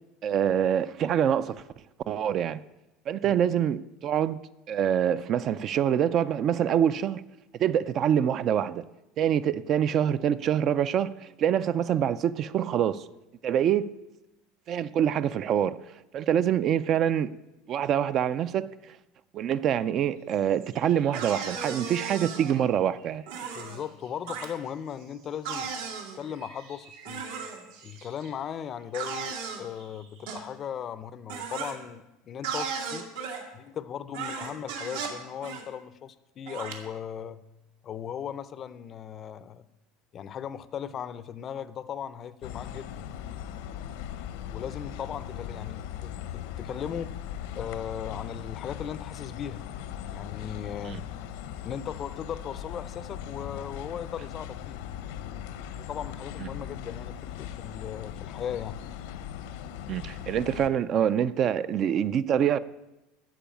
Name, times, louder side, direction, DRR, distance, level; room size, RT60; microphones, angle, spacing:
voice 1, 0.2-1.6 2.1-2.6 3.1-4.4 4.7-7.2 7.6-8.8 9.2-13.0 13.4-13.9 14.7-15.8 16.1-17.3 17.7-18.7 19.3-23.2 50.8-51.0 56.4-56.5 59.9-62.6, right 9 dB, 35° right, 0.3 m, -25 dB
sound 1, 20.1-30.4, right 5 dB, 60° right, 4.9 m, -56 dB
sound 2, 21.1-22.5 23.3-23.8 24.3-24.5 25.4-26.2 27.0-27.6 28.9-29.6 30.3-30.4 31.3-31.7 32.4-33.4 34.1-35.2 35.4-35.6 36.5-36.7, right 6 dB, 80° right, 2.1 m, -35 dB
voice 2, 23.4-25.7 26.1-27.2 27.8-33.1 33.5-37.4 37.8-39.6 40.1-43.0 44.5-47.1 47.5-49.6 50.1-51.0 51.6-54.8 55.7-58.8, left 8 dB, 30° left, 0.5 m, -37 dB
sound 3, 42.4-60.7, left 10 dB, 75° left, 0.8 m, -39 dB
14.0 x 4.7 x 9.0 m
cardioid pair, 165°, 0 cm